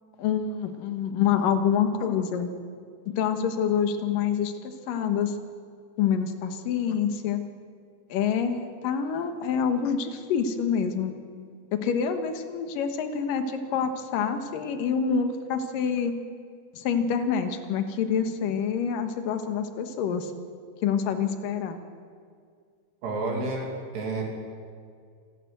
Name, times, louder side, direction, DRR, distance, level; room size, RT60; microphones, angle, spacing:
voice 1, 0.2-2.5 3.2-5.3 6.0-7.4 8.1-11.1 11.7-16.1 16.7-20.3 20.8-21.8, left 7 dB, 65° left, 7 dB, 2.5 m, -27 dB
voice 2, 23.0-24.3, right 2 dB, 75° right, 0 dB, 4.7 m, -30 dB
27.5 x 12.5 x 8.0 m, 2.1 s
omnidirectional pair, 4.9 m